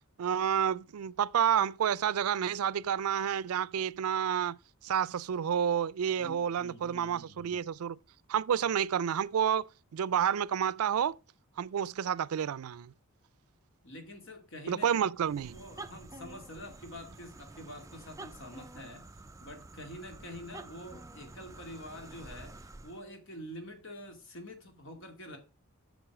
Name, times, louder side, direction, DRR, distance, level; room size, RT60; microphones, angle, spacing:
voice 1, 0.2-4.6 4.8-8.0 8.3-11.2 11.6-12.9 14.7-15.6, right 8 dB, 85° right, 0.4 m, -30 dB
voice 2, 6.2-7.7 13.8-15.1 15.5-19.1 19.4-25.4, left 1 dB, 60° left, 2.4 m, -47 dB
sound 1, 15.2-23.1, right 2 dB, 15° right, 0.4 m, -49 dB
8.0 x 6.2 x 6.0 m
head